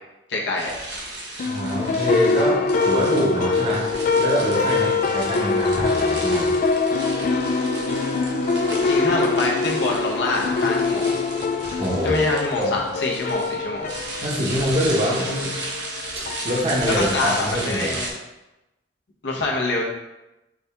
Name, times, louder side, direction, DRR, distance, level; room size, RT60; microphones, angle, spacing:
voice 1, 0.3-0.7 4.8-4.9 8.9-11.2 12.0-13.9 16.9-18.1 19.2-19.8, left 2 dB, 85° left, -2 dB, 0.9 m, -25 dB
sound 1, 0.6-18.1, right 2 dB, 75° right, 1.0 m, -35 dB
sound 2, 1.4-17.0, left 3 dB, 50° left, 0.3 m, -24 dB
voice 2, 1.4-3.9 4.2-6.5 11.8-12.2 12.6-12.7 14.2-15.5 16.4-17.9, equal, 35° right, -5 dB, 0.9 m, -24 dB
Wild animals, 5.3-13.8, left 1 dB, 30° left, 0.7 m, -45 dB
4.9 x 2.8 x 3.5 m, 0.98 s
head